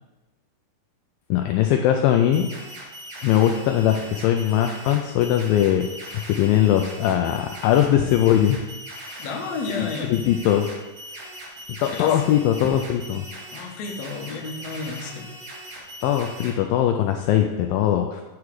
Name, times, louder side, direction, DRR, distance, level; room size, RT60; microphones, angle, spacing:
voice 1, 1.3-2.5 3.2-5.9 6.4-8.6 9.8-10.7 11.8-13.3 16.0-18.2, left 11 dB, 85° left, 4 dB, 2.0 m, -20 dB
sound 1, 2.1-16.5, equal, 75° right, 4.0 m, -40 dB
voice 2, 9.2-10.2 11.9-12.1 13.5-15.3, left 4 dB, 70° left, 1 dB, 1.6 m, -32 dB
10.0 x 4.8 x 4.7 m, 1.1 s
omnidirectional pair, 4.7 m